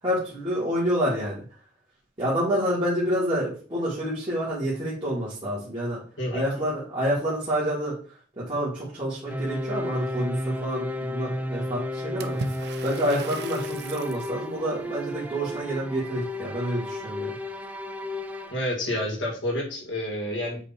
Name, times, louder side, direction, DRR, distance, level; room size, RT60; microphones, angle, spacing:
voice 1, 0.0-1.4 2.2-6.0 6.3-7.9 8.4-17.3, equal, 25° right, -9 dB, 1.9 m, -28 dB
sound 1, 9.3-18.5, left 1 dB, 10° right, 0.5 m, -33 dB
Water / Splash splatter, 12.2-14.3, right 3 dB, 60° right, 0.6 m, -37 dB
voice 2, 18.5-20.6, left 1 dB, 80° left, 0 dB, 2.2 m, -29 dB
8.2 x 2.9 x 4.3 m, 0.41 s
head